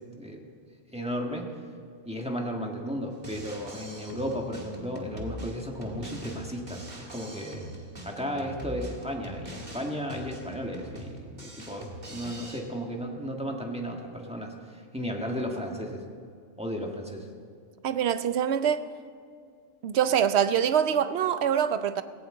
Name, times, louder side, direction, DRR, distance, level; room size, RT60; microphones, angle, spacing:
voice 1, 0.9-1.5 2.0-7.7 8.0-16.0 16.6-17.3, equal, 5° right, 1.5 m, -34 dB
Drum kit, 3.1-12.6, equal, 35° right, 1.9 m, -42 dB
voice 2, 17.8-18.8 19.8-22.0, right 8 dB, 65° right, 0.9 m, -24 dB
17.0 x 17.0 x 3.8 m
omnidirectional pair, 1.3 m